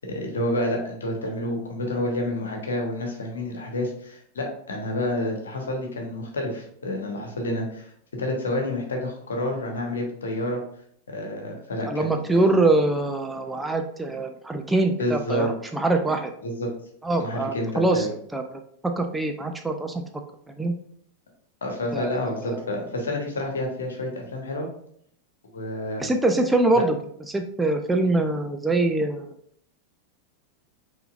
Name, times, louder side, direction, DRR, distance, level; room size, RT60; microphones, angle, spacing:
voice 1, 0.1-7.9 8.2-10.6 11.1-12.6 15.0-15.5 16.4-16.7 17.2-18.1 21.6-24.7 25.5-26.1 26.7-26.8, left 1 dB, 70° left, 2 dB, 1.2 m, -29 dB
voice 2, 11.9-16.3 17.0-20.0 20.6-20.7 21.9-22.6 26.0-27.0 27.3-29.3, right 2 dB, 5° right, 5 dB, 0.5 m, -24 dB
5.6 x 3.8 x 2.5 m, 0.66 s
figure-of-eight pair, 90°, 0 cm